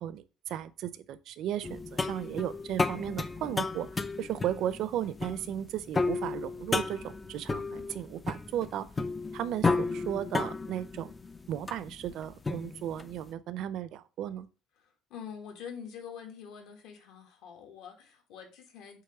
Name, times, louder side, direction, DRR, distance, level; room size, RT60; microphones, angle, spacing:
voice 1, 0.0-3.9 4.2-8.9 9.3-11.1 11.5-14.5, right 11 dB, 55° right, 0.5 m, -35 dB
sound 1, 1.6-13.2, left 3 dB, 15° left, 0.3 m, -33 dB
voice 2, 14.8-19.0, left 7 dB, 70° left, 1.7 m, -45 dB
7.9 x 3.0 x 4.9 m
cardioid pair, 165°, 0 cm